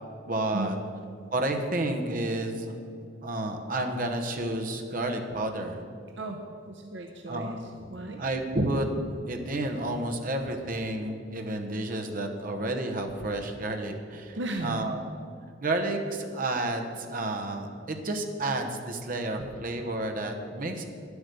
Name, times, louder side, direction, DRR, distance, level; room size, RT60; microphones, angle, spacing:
voice 1, 0.3-0.8 1.3-5.8 7.3-7.9 8.2-8.9 9.3-15.0 15.6-20.9, right 2 dB, 45° right, 4 dB, 1.0 m, -31 dB
voice 2, 6.2-8.2 14.3-15.0, right 2 dB, 65° right, 3 dB, 0.7 m, -36 dB
9.9 x 8.1 x 6.8 m, 2.4 s
head